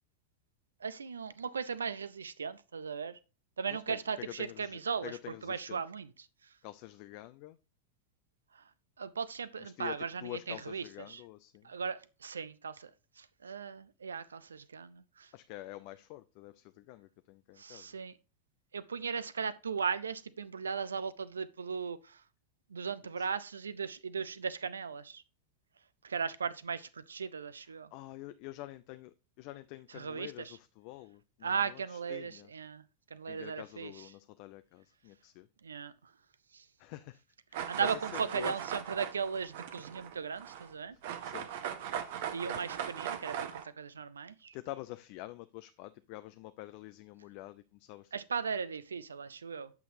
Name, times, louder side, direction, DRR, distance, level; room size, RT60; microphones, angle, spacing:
voice 1, 0.8-3.2 3.6-6.3 8.5-8.6 9.0-11.2 11.6-12.9 13.2-15.3 17.6-18.1 18.7-22.2 22.7-25.2 26.0-27.9 29.9-30.6 31.4-32.8 33.1-34.1 35.6-35.9 36.5-36.6 37.7-41.0 42.3-44.5 48.1-49.7, right 6 dB, 70° right, 0.4 m, -37 dB
voice 2, 3.7-5.8 6.6-7.6 9.6-11.7 15.3-17.9 23.2-23.3 27.9-32.5 33.3-35.5 36.8-37.2 37.5-38.6 41.2-41.5 44.5-48.1, left 17 dB, 45° left, 0.3 m, -47 dB
sound 1, 37.5-40.7 41.0-43.6, right 9 dB, 50° right, 0.9 m, -39 dB
8.2 x 5.8 x 2.7 m
figure-of-eight pair, 90°, 0 cm